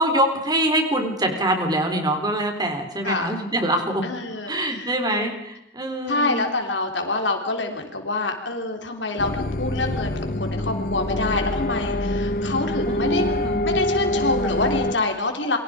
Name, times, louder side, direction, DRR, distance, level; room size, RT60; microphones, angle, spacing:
voice 1, 0.0-4.1 4.5-6.5 12.9-13.6, right 1 dB, 20° right, 5 dB, 4.0 m, -24 dB
voice 2, 4.0-4.5 5.1-5.3 6.1-13.3 13.6-15.6, left 2 dB, 75° left, 4 dB, 3.6 m, -26 dB
sound 1, 9.2-14.9, left 1 dB, 50° left, 0.9 m, -25 dB
28.5 x 24.0 x 5.1 m, 0.83 s
head